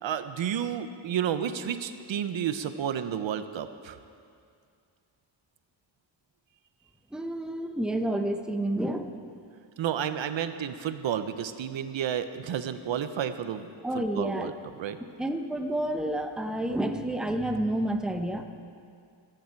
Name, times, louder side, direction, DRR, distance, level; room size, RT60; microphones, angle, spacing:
voice 1, 0.0-4.0 9.8-15.0, right 9 dB, 80° right, 10 dB, 0.8 m, -31 dB
voice 2, 7.1-9.1 13.8-14.5 15.2-18.5, right 1 dB, ahead, 5 dB, 0.8 m, -29 dB
25.0 x 10.0 x 4.6 m, 2.3 s
wide cardioid pair, 120°, 45 cm